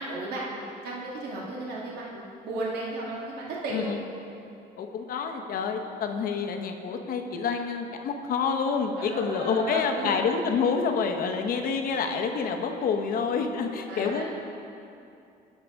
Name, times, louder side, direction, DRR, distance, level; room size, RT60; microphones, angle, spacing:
voice 1, 0.0-3.9 9.0-10.2 13.9-14.2, right 2 dB, 75° right, -4 dB, 1.6 m, -34 dB
voice 2, 4.8-14.2, left 5 dB, 60° left, 5 dB, 0.8 m, -28 dB
10.5 x 6.7 x 3.5 m, 2.6 s
cardioid pair, 110°, 17 cm